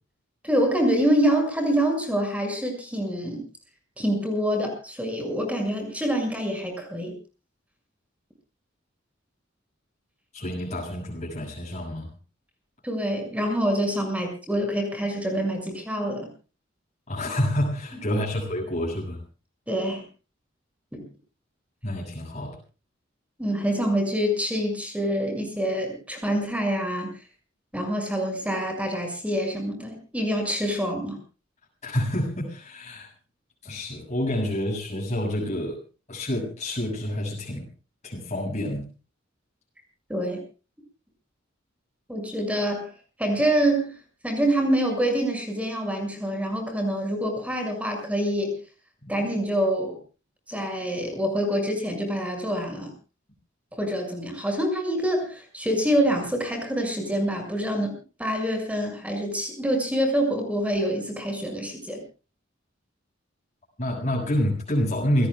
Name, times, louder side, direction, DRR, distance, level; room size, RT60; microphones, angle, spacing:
voice 1, 0.4-3.4 4.0-7.1 12.8-16.3 19.7-20.1 20.9-21.0 23.4-27.1 27.7-31.2 40.1-40.4 42.1-42.9 43.2-43.9 44.2-48.6 49.1-50.0 50.5-52.9 53.7-57.9 58.2-62.0, equal, 5° right, 4 dB, 6.5 m, -26 dB
voice 2, 10.3-12.1 17.1-19.2 21.8-22.6 31.8-33.1 33.6-35.8 36.1-37.7 38.0-38.9 49.0-49.1 63.8-65.3, left 1 dB, 35° left, -2 dB, 6.9 m, -28 dB
28.0 x 17.5 x 2.4 m, 0.34 s
head